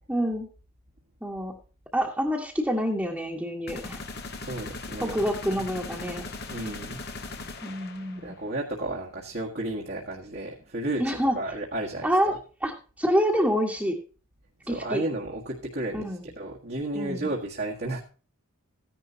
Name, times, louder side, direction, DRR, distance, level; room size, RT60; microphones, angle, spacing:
voice 1, 0.1-0.5 1.2-1.5 1.9-4.0 5.0-6.2 7.6-8.4 11.0-11.4 12.0-12.3 12.6-12.7 13.0-14.0 14.7-15.0 15.9-16.2 17.0-17.3, equal, 5° right, -4 dB, 1.6 m, -27 dB
sound 1, 3.7-8.4, left 3 dB, 50° left, 1.5 m, -39 dB
voice 2, 4.4-5.2 5.5-5.7 6.5-7.4 8.2-12.4 14.6-18.0, right 1 dB, 45° right, -2 dB, 1.8 m, -33 dB
14.5 x 10.5 x 2.9 m, 0.36 s
head